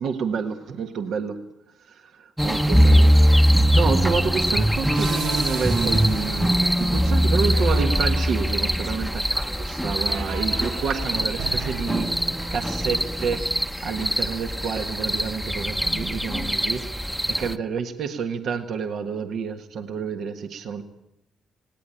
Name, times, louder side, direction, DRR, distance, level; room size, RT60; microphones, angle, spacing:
voice 1, 0.0-1.4 1.9-3.2 3.7-12.1 12.5-13.4 13.8-16.9 17.3-20.8, right 6 dB, 65° right, 6 dB, 1.5 m, -29 dB
sound 1, 2.4-17.5, equal, ahead, 0.9 m, -22 dB
sound 2, 4.9-13.4, right 5 dB, 90° right, 1.9 m, -38 dB
19.5 x 18.0 x 10.0 m, 0.85 s
cardioid pair, 90°, 0 cm